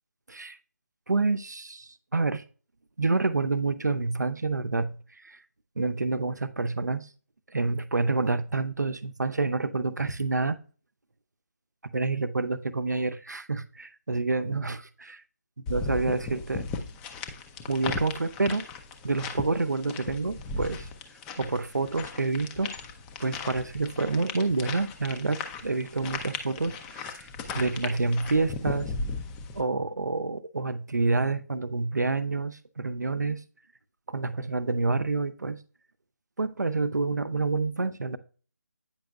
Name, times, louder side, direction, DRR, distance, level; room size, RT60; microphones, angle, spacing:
voice 1, 1.1-2.4 3.0-5.0 5.2-5.4 5.8-7.1 7.5-10.6 11.9-15.1 15.7-16.7 17.7-18.6 19.0-20.9 21.4-22.7 23.2-27.3 27.5-28.9 29.5-33.4 34.1-35.6 36.4-38.2, right 3 dB, 80° right, 0.7 m, -28 dB
sound 1, 15.7-29.6, left 4 dB, 10° left, 0.4 m, -37 dB
8.8 x 5.4 x 2.3 m
figure-of-eight pair, 150°, 9 cm